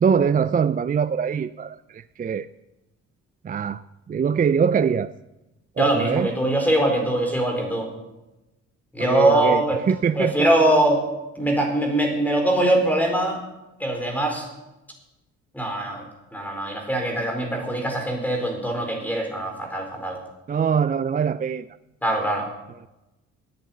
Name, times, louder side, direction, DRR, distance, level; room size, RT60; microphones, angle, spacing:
voice 1, 0.0-2.5 3.4-5.1 5.8-6.3 9.0-10.3 20.5-21.7, right 7 dB, 30° right, 14 dB, 0.4 m, -23 dB
voice 2, 5.8-7.9 8.9-9.8 10.1-11.0 11.4-13.4 13.8-14.5 15.5-16.0 16.3-20.2 22.0-22.5, right 1 dB, 5° left, 2 dB, 4.3 m, -22 dB
10.0 x 9.4 x 9.1 m, 0.99 s
cardioid pair, 90°, 30 cm